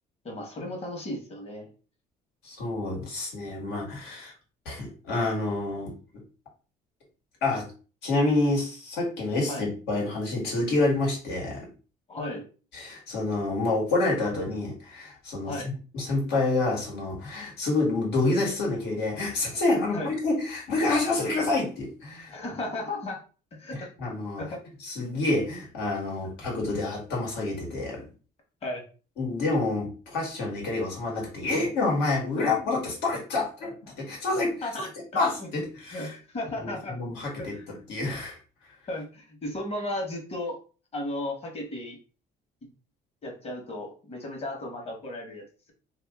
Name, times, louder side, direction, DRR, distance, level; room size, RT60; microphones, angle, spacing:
voice 1, 0.2-1.7 9.5-9.7 12.1-12.5 15.5-15.7 19.9-20.1 22.3-23.2 23.5-23.9 24.4-24.6 28.6-28.8 32.4-32.5 34.6-34.9 35.4-35.5 35.9-37.0 37.4-37.6 38.9-40.6 40.9-42.0 43.2-45.7, left 1 dB, 35° left, 1 dB, 1.3 m, -35 dB
voice 2, 2.4-4.3 4.6-6.0 7.4-7.7 8.0-11.7 12.7-15.6 15.9-22.3 24.0-24.4 24.8-28.0 29.2-34.7 35.1-36.2 36.6-37.6 37.9-38.4, left 2 dB, 85° left, -2 dB, 1.7 m, -28 dB
2.8 x 2.6 x 3.6 m, 0.36 s
cardioid pair, 110°, 17 cm